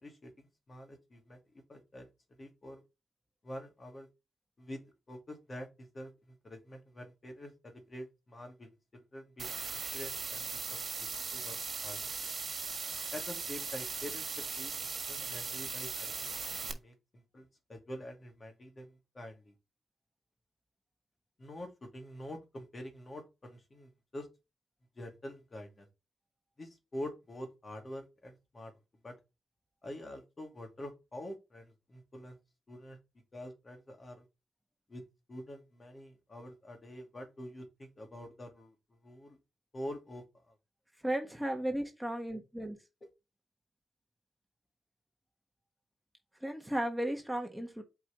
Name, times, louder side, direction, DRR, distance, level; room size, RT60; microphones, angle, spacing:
voice 1, 0.0-1.4 1.7-2.1 2.4-2.8 3.4-4.1 4.6-12.0 13.1-14.7 15.1-16.3 16.6-19.5 21.4-24.3 25.0-25.8 26.6-28.7 29.0-29.1 29.8-32.4 32.7-33.0 33.3-34.2 34.9-35.0 35.3-39.4 39.7-40.5, left 1 dB, 40° left, 3 dB, 2.7 m, -46 dB
sound 1, 9.4-16.7, right 5 dB, 50° right, 1.7 m, -39 dB
voice 2, 41.0-42.8 46.4-47.8, right 1 dB, 5° right, 4 dB, 1.5 m, -35 dB
8.0 x 4.8 x 3.1 m, 0.26 s
cardioid pair, 65°, 0 cm